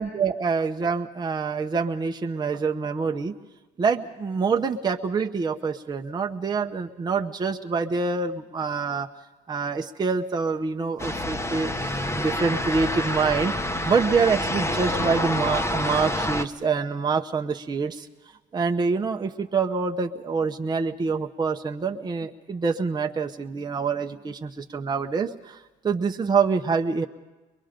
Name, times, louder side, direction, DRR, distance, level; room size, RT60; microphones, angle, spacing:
voice 1, 0.0-3.3 3.8-9.1 9.5-13.5 13.8-18.1 18.5-25.6 25.8-27.1, right 5 dB, 25° right, 3 dB, 0.9 m, -26 dB
sound 1, 11.0-16.5, left 1 dB, 15° left, 1.0 m, -27 dB
23.0 x 22.5 x 5.2 m, 1.2 s
cardioid pair, 110°, 17 cm